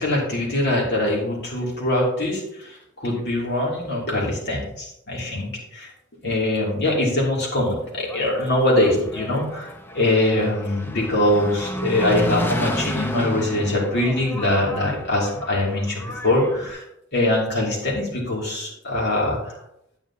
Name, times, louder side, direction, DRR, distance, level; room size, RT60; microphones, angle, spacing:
voice 1, 0.0-5.9 6.2-16.8 17.1-19.6, left 1 dB, 55° left, -3 dB, 2.9 m, -23 dB
Engine, 7.9-16.7, left 1 dB, 10° left, 0.6 m, -32 dB
9.8 x 8.7 x 2.9 m, 0.78 s
head